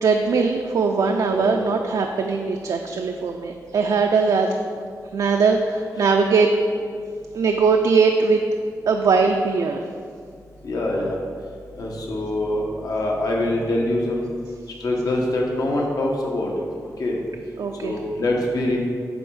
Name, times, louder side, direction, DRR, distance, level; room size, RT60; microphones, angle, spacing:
voice 1, 0.0-4.6 5.1-6.5 7.3-8.4 8.9-9.8 17.6-18.0, right 4 dB, 80° right, 3 dB, 0.5 m, -20 dB
voice 2, 1.3-1.8 10.6-11.2 11.8-14.3 14.8-16.5 17.0-17.2 17.8-18.8, left 1 dB, 70° left, -1 dB, 1.3 m, -24 dB
9.4 x 3.5 x 6.3 m, 2.1 s
wide cardioid pair, 110°, 6 cm